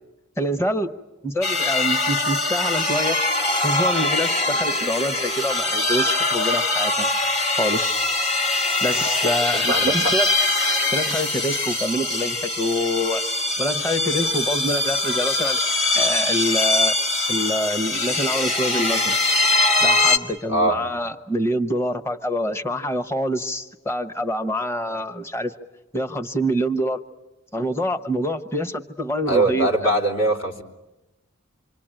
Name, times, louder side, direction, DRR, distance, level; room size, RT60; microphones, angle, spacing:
voice 1, 0.4-1.0 1.2-3.2 3.6-7.1 7.6-8.0 8.8-10.3 10.9-13.2 13.6-15.6 15.9-17.0 17.3-19.2 19.8-25.5 25.9-27.0 27.5-29.9, equal, 10° left, 8 dB, 0.9 m, -26 dB
sound 1, 1.4-20.2, left 2 dB, 30° left, 2.0 m, -22 dB
voice 2, 9.5-10.1 20.5-20.8 29.3-30.6, right 1 dB, 65° left, 0 dB, 3.5 m, -21 dB
27.5 x 24.5 x 8.9 m, 1.0 s
head